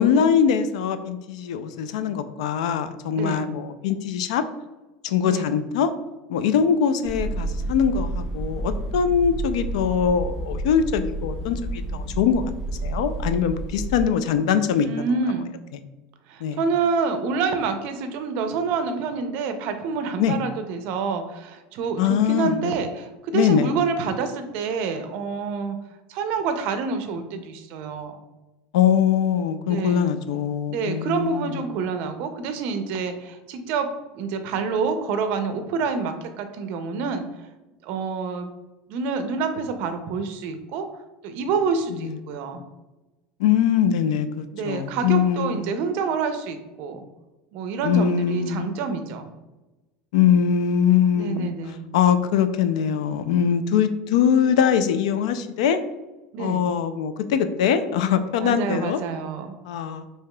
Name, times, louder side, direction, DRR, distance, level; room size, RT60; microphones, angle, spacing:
voice 1, 0.0-4.4 5.0-5.9 6.3-12.5 12.8-15.2 16.4-16.6 20.2-20.4 22.0-22.7 23.3-23.7 28.7-31.6 42.0-42.2 43.4-45.7 47.8-48.7 50.1-51.5 51.9-55.8 56.4-59.0 59.7-60.1, left 8 dB, 90° left, 10 dB, 0.3 m, -22 dB
voice 2, 5.2-5.5 14.8-15.5 16.3-25.8 26.1-28.1 29.7-30.1 30.7-37.2 37.8-38.5 38.9-40.9 41.2-42.6 44.5-47.0 47.5-49.3 51.2-51.9 56.3-56.6 58.4-59.6, right 5 dB, 50° right, 8 dB, 0.5 m, -27 dB
sound 1, 7.0-14.0, right 2 dB, 10° right, 1.4 m, -30 dB
4.7 x 2.8 x 2.2 m, 1.1 s
supercardioid pair, 160°, 4 cm